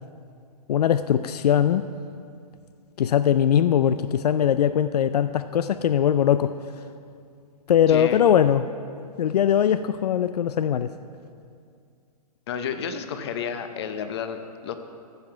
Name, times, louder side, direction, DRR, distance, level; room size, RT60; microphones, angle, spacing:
voice 1, 0.7-1.8 3.0-6.5 7.7-8.7 9.2-10.9, left 9 dB, 85° left, 13 dB, 0.4 m, -21 dB
voice 2, 7.9-8.2 12.5-14.7, left 7 dB, 45° left, 9 dB, 0.8 m, -31 dB
14.5 x 5.7 x 5.8 m, 2.3 s
hypercardioid pair, 155°, 20 cm